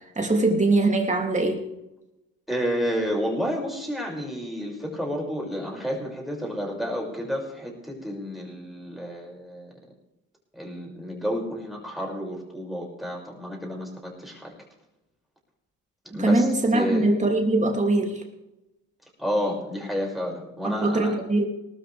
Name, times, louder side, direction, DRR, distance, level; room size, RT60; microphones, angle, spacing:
voice 1, 0.2-1.7 16.1-18.2 20.6-21.5, right 2 dB, 25° right, 2 dB, 3.0 m, -22 dB
voice 2, 2.5-9.7 10.5-14.5 16.0-16.5 16.7-17.1 19.2-21.2, equal, ahead, -1 dB, 6.5 m, -30 dB
19.0 x 13.5 x 3.5 m, 0.93 s
cardioid pair, 90°, 30 cm